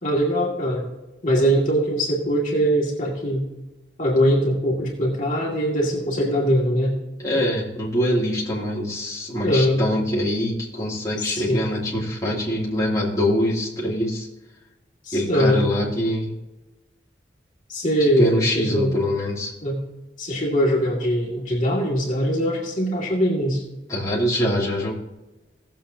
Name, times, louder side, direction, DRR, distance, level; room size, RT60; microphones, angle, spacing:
voice 1, 0.0-0.8 1.2-3.4 4.0-7.0 9.4-9.8 11.2-11.7 15.0-15.7 17.7-18.9 19.6-19.8 20.2-23.6, equal, 45° left, -3 dB, 2.2 m, -22 dB
voice 2, 7.2-14.3 15.1-16.3 18.0-19.5 23.9-24.9, equal, 20° left, -7 dB, 2.6 m, -24 dB
18.0 x 7.4 x 2.8 m, 1.0 s
head